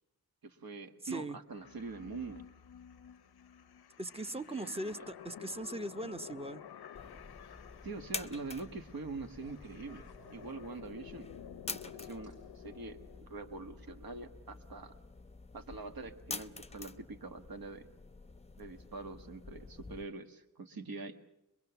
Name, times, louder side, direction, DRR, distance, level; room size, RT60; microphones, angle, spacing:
voice 1, 0.4-2.4 4.3-5.0 7.8-10.0 10.3-11.3 11.7-15.0 15.5-17.9 18.6-21.2, right 3 dB, 65° right, 7 dB, 1.6 m, -44 dB
voice 2, 1.0-1.4 4.0-6.6, right 1 dB, 15° right, 10 dB, 0.8 m, -39 dB
sound 1, 1.5-13.2, left 9 dB, 85° left, 0.7 m, -52 dB
sound 2, 6.9-20.0, left 3 dB, 15° left, 0.7 m, -48 dB
sound 3, 9.3-11.1 12.2-12.3 13.2-13.4, right 2 dB, 85° right, 6.8 m, -60 dB
23.0 x 22.5 x 6.9 m, 0.88 s
wide cardioid pair, 80°, 37 cm